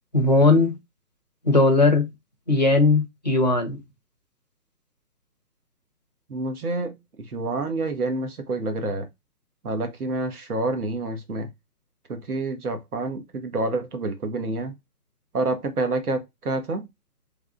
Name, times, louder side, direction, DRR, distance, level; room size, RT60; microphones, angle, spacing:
voice 1, 0.1-0.8 1.4-2.1 2.5-3.8, left 2 dB, 30° left, 0.5 m, -18 dB
voice 2, 6.3-7.0 7.3-9.0 9.6-11.5 12.1-14.7 15.3-16.9, right 2 dB, 70° right, 1.3 m, -28 dB
3.5 x 3.5 x 2.4 m
hypercardioid pair, 170°, 47 cm